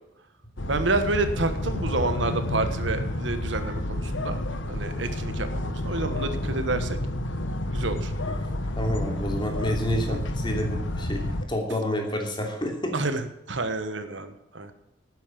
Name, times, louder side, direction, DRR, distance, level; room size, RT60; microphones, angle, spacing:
sound 1, 0.6-11.5, left 1 dB, 80° left, 1.3 m, -30 dB
voice 1, 0.7-4.4 4.7-7.0 7.7-8.1 10.1-10.2 12.9-13.2 13.5-14.7, right 3 dB, 75° right, 9 dB, 1.4 m, -29 dB
voice 2, 8.8-13.0, equal, 25° left, 2 dB, 3.0 m, -29 dB
12.0 x 9.7 x 7.4 m, 0.87 s
head